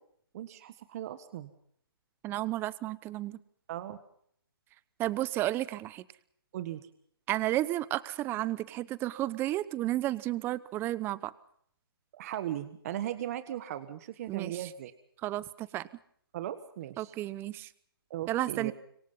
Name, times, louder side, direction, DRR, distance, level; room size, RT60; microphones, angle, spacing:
voice 1, 0.3-1.5 3.7-4.0 6.5-6.9 12.1-14.9 16.3-17.1 18.1-18.7, right 12 dB, 40° right, 11 dB, 1.6 m, -38 dB
voice 2, 2.2-3.4 5.0-6.0 7.3-11.3 14.3-14.7 15.2-15.9 17.0-17.7 18.3-18.7, right 15 dB, 15° right, 19 dB, 0.9 m, -32 dB
26.5 x 23.5 x 5.6 m, 0.65 s
hypercardioid pair, 150°, 13 cm